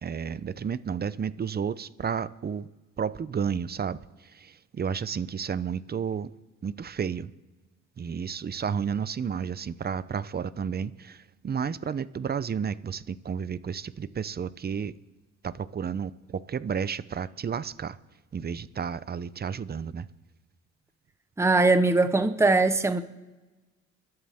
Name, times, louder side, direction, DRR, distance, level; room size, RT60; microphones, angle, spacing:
voice 1, 0.0-2.7 3.0-6.3 6.6-7.3 8.0-14.9 15.4-18.0 18.3-20.1, right 7 dB, 30° right, 0.7 m, -32 dB
voice 2, 21.4-23.0, right 3 dB, 10° right, 1.0 m, -21 dB
29.0 x 12.5 x 3.6 m
cardioid pair, 90°, 30 cm